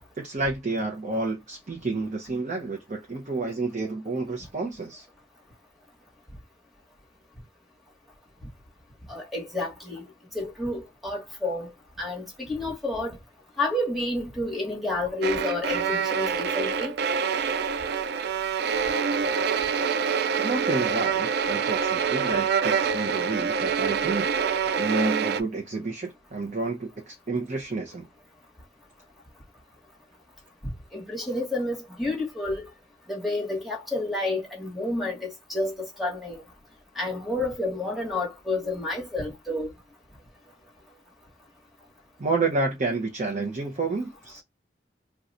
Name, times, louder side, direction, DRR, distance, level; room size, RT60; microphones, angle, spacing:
voice 1, 0.0-5.0 20.4-24.3 24.6-28.1 42.2-44.4, right 3 dB, 45° right, 0.7 m, -30 dB
voice 2, 9.1-10.0 10.3-11.7 12.0-13.2 13.6-16.9 30.9-32.7 33.1-36.4 37.0-39.7, left 2 dB, ahead, 1.2 m, -30 dB
sound 1, 15.2-25.4, right 6 dB, 65° right, 0.3 m, -26 dB
2.5 x 2.3 x 4.0 m
head